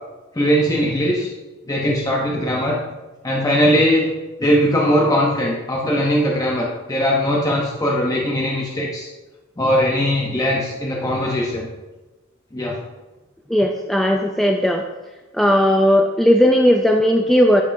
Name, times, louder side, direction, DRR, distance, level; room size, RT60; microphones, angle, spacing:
voice 1, 0.3-1.3 1.7-2.8 3.2-4.1 4.4-9.1 9.6-11.7 12.5-12.8, equal, 15° left, -2 dB, 0.7 m, -20 dB
voice 2, 13.5-14.8 15.3-17.6, equal, ahead, 1 dB, 0.3 m, -16 dB
11.0 x 5.2 x 2.6 m, 1.1 s
head